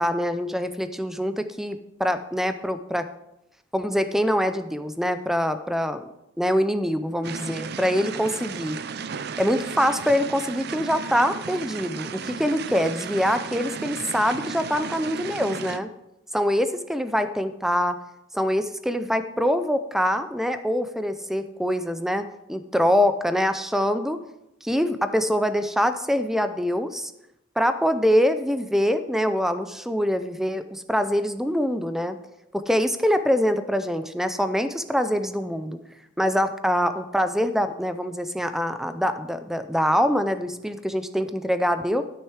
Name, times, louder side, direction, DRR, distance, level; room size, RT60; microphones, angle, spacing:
voice 1, 0.0-3.1 3.7-6.0 6.4-8.8 9.4-15.9 16.3-18.0 18.3-22.2 22.5-24.2 24.6-27.1 27.6-32.2 32.5-35.8 36.2-42.0, equal, ahead, 10 dB, 0.5 m, -24 dB
sound 1, 7.2-15.8, right 5 dB, 55° right, 0.5 m, -35 dB
12.5 x 6.6 x 4.8 m, 0.88 s
head